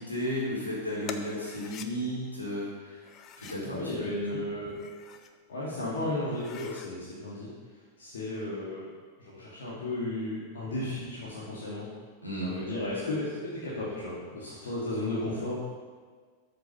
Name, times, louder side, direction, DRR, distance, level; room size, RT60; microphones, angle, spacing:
voice 1, 0.0-3.0 3.4-3.8 4.2-4.4 12.2-12.5, equal, 85° left, -5 dB, 4.0 m, -33 dB
sound 1, 1.0-1.9 3.0-3.7 4.6-5.3 5.8-5.9 6.3-6.9, left 7 dB, 35° left, 0.8 m, -45 dB
voice 2, 3.6-4.7 5.5-7.5 8.0-8.9 9.2-11.9 12.4-15.6, left 1 dB, 65° left, -7 dB, 2.6 m, -34 dB
13.0 x 6.9 x 5.7 m, 1.5 s
figure-of-eight pair, 90°, 0 cm